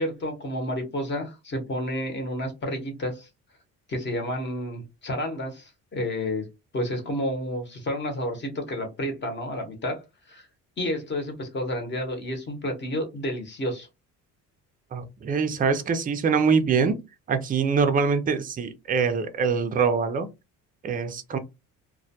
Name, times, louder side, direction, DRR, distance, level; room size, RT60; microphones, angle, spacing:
voice 1, 0.0-3.3 3.9-6.5 6.7-10.0 10.3-10.5 10.8-13.9, left 1 dB, 35° left, 0.9 m, -30 dB
voice 2, 14.9-17.0 17.3-20.3 20.8-21.4, right 5 dB, 25° right, 0.4 m, -24 dB
2.2 x 2.1 x 2.7 m
cardioid pair, 115°, 32 cm